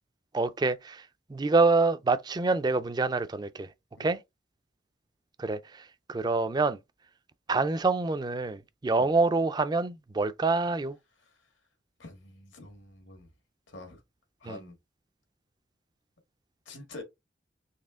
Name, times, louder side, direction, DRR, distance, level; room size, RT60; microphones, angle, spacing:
voice 1, 0.3-1.0 1.3-3.7 4.0-4.2 5.4-6.8 7.5-11.0 14.4-14.6, right 3 dB, 20° right, 0.3 m, -26 dB
voice 2, 12.0-13.3 13.7-14.0 14.4-14.8 16.6-17.0, left 2 dB, 90° left, 1.6 m, -46 dB
4.2 x 2.8 x 3.5 m
head